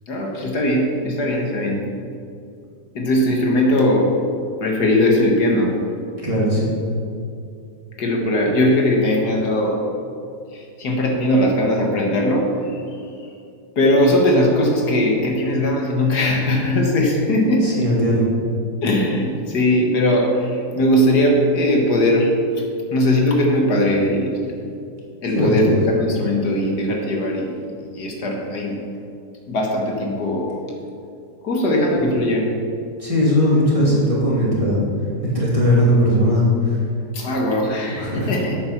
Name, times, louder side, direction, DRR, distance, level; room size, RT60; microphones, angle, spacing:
voice 1, 0.1-1.8 3.0-4.2 4.6-5.7 8.0-9.8 10.5-12.8 13.8-17.7 18.8-22.3 22.9-24.3 25.2-27.6 27.9-28.8 29.5-30.5 31.4-32.5 33.8-34.0 37.1-38.6, left 1 dB, 70° left, 0 dB, 2.0 m, -19 dB
voice 2, 6.2-6.7 17.6-18.2 25.4-25.8 33.0-34.8 35.2-36.8 38.0-38.3, equal, 20° right, -6 dB, 2.6 m, -18 dB
9.1 x 8.5 x 5.9 m, 2.5 s
omnidirectional pair, 1.8 m